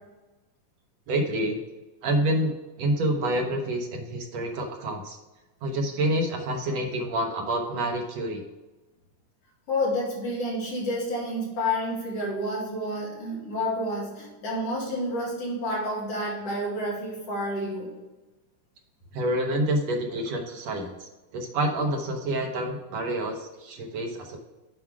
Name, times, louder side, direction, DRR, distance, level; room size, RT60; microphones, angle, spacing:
voice 1, 1.1-1.6 2.0-5.2 5.6-8.4 19.1-24.4, right 1 dB, 70° right, 2 dB, 1.7 m, -28 dB
voice 2, 9.7-17.9, left 1 dB, 50° left, -4 dB, 3.0 m, -29 dB
7.7 x 4.7 x 4.6 m, 1.1 s
omnidirectional pair, 3.8 m